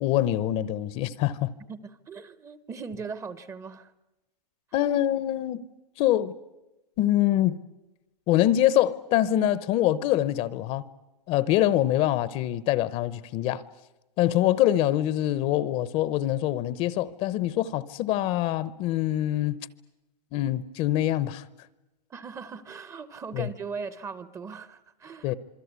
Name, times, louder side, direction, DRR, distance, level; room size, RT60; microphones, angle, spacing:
voice 1, 0.0-1.5 4.7-5.6 6.0-6.3 7.0-7.6 8.3-10.9 11.3-13.6 14.2-19.6 20.3-21.5 23.3-23.5 25.2-25.3, left 13 dB, 30° left, 0.8 m, -24 dB
voice 2, 1.7-3.9 22.1-25.3, right 5 dB, 15° right, 0.8 m, -39 dB
27.0 x 23.0 x 8.3 m
hypercardioid pair, 140°, 21 cm